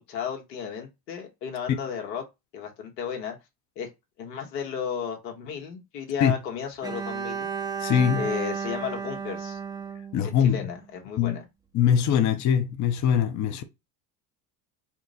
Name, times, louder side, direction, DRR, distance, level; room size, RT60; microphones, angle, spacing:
voice 1, 0.1-2.2 2.5-3.4 3.8-3.9 4.2-7.5 8.2-9.6 10.4-11.4, left 7 dB, 85° left, 1.4 m, -34 dB
Bowed string instrument, 6.8-10.9, right 6 dB, 10° right, 0.5 m, -33 dB
voice 2, 7.8-8.2 10.1-10.7 11.2-11.4 11.7-13.6, left 8 dB, 35° left, 0.6 m, -22 dB
4.4 x 2.1 x 3.9 m
supercardioid pair, 90°, 49 cm